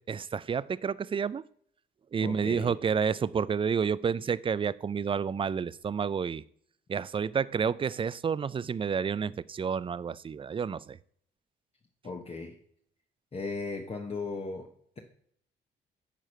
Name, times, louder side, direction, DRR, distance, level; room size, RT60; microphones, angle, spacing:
voice 1, 0.1-1.4 2.1-6.4 6.9-11.0, right 6 dB, 25° right, 0.4 m, -30 dB
voice 2, 2.2-2.7 12.0-12.6 13.3-14.7, left 3 dB, 30° left, 1.0 m, -36 dB
9.0 x 4.8 x 5.6 m
cardioid pair, 90°, 20 cm